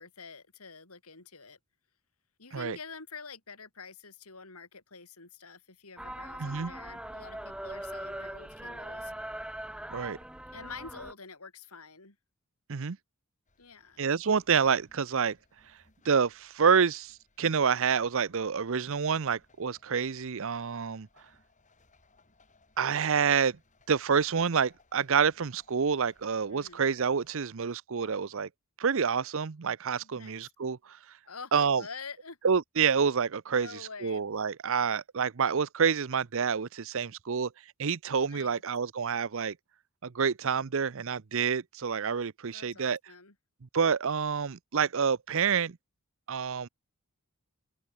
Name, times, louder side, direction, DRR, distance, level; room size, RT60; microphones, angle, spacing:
voice 1, 0.0-1.6 2.4-9.1 10.5-12.2 13.6-14.0 26.5-26.8 30.0-30.5 31.3-32.4 33.5-34.2 38.3-38.6 42.5-43.3, left 4 dB, 80° left, 4.9 m, -47 dB
sound 1, 6.0-11.1, right 1 dB, 5° right, 0.8 m, -41 dB
voice 2, 6.4-6.7 9.9-10.2 12.7-13.0 14.0-15.4 16.0-21.1 22.8-23.6 23.9-28.5 28.8-31.0 31.5-31.8 32.4-33.7 34.0-37.5 37.8-39.6 40.0-43.0 43.7-45.8 46.3-46.7, right 6 dB, 65° right, 0.6 m, -28 dB
sound 2, 13.5-27.5, left 3 dB, 35° left, 7.7 m, -67 dB
open air
head